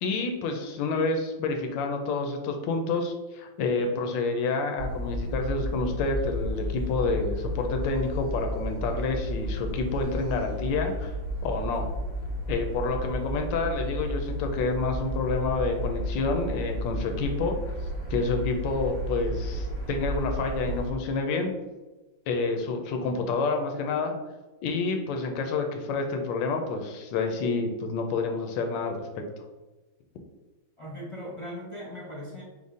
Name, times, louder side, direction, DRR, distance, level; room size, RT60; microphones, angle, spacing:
voice 1, 0.0-11.1 11.4-11.9 12.5-17.8 18.1-21.5 22.3-24.1 24.6-29.2, left 3 dB, 90° left, 4 dB, 1.3 m, -28 dB
sound 1, 4.8-20.9, equal, 60° right, 2.3 m, -32 dB
voice 2, 30.8-32.4, equal, 40° left, -3 dB, 0.4 m, -39 dB
5.4 x 2.0 x 4.8 m, 1.2 s
omnidirectional pair, 2.0 m